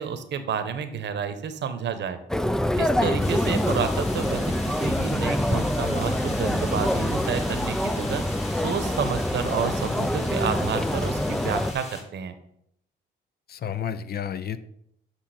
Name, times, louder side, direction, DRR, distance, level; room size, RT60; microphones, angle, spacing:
voice 1, 0.0-2.2 2.8-8.2 8.5-12.3, right 7 dB, 65° right, 10 dB, 1.0 m, -30 dB
sound 1, 2.3-11.7, left 1 dB, 5° left, 0.4 m, -25 dB
sound 2, 3.2-12.0, left 2 dB, 35° left, 2.0 m, -40 dB
voice 2, 13.5-14.6, left 8 dB, 50° left, 13 dB, 0.6 m, -31 dB
8.0 x 5.9 x 4.3 m, 0.75 s
cardioid pair, 90°, 20 cm